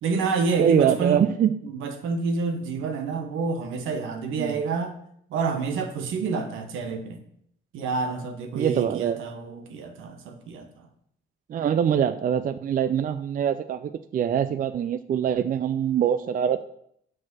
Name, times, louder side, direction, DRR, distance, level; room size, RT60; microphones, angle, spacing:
voice 1, 0.0-1.2 1.6-5.0 5.3-7.2 7.7-10.9, right 4 dB, 85° right, 5 dB, 1.1 m, -28 dB
voice 2, 0.6-1.6 4.4-4.6 8.6-9.2 11.5-16.6, right 9 dB, 45° right, 12 dB, 0.4 m, -24 dB
6.1 x 4.9 x 6.1 m, 0.69 s
cardioid pair, 90°, 20 cm